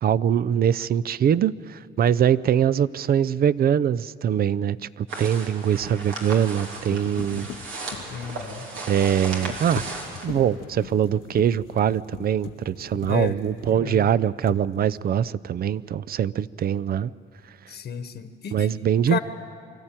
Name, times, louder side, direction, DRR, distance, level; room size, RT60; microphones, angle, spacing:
voice 1, 0.0-7.5 8.9-9.8 10.2-17.1 18.5-19.2, right 9 dB, 50° right, 18 dB, 0.5 m, -23 dB
sound 1, 2.1-2.2 5.3-14.0 14.4-15.2, left 11 dB, 85° left, 0.8 m, -41 dB
sound 2, 5.1-10.3, right 3 dB, 85° right, 3.0 m, -36 dB
voice 2, 8.1-8.7 13.1-13.4 13.7-14.1 17.7-18.7 19.1-19.2, left 7 dB, 60° left, 9 dB, 1.2 m, -32 dB
24.5 x 14.0 x 9.0 m, 2.5 s
cardioid pair, 90°, 20 cm